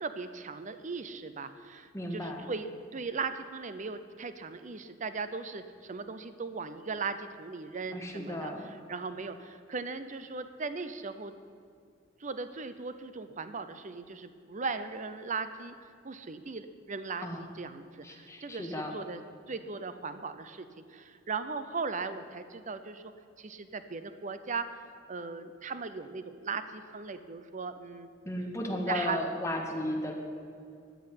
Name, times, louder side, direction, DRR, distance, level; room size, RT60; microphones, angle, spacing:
voice 1, 0.0-11.3 12.2-19.2 19.5-23.1 23.4-24.8 25.1-28.1 28.9-29.2, right 4 dB, 40° right, 11 dB, 0.7 m, -38 dB
voice 2, 1.9-2.5 7.9-8.6 17.2-17.5 18.0-18.9 28.2-30.1, left 1 dB, 15° left, 1 dB, 1.7 m, -34 dB
14.0 x 6.3 x 9.8 m, 2.4 s
head